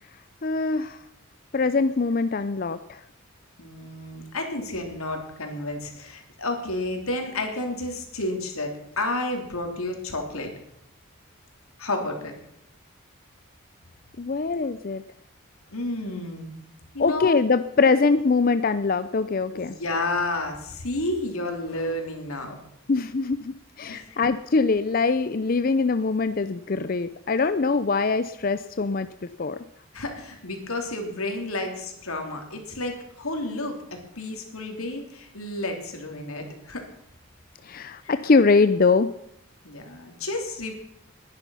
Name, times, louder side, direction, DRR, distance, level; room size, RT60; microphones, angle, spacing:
voice 1, 0.4-1.0 1.5-3.0 14.2-15.0 17.0-19.8 22.9-29.1 29.4-29.6 37.6-39.1, left 4 dB, 40° left, 12 dB, 0.5 m, -23 dB
voice 2, 3.6-10.5 11.8-12.3 15.7-16.5 16.9-17.4 19.5-22.6 23.9-24.2 29.9-36.8 38.0-38.2 39.6-40.7, left 2 dB, 85° left, 3 dB, 3.3 m, -31 dB
20.0 x 10.5 x 5.7 m, 0.75 s
head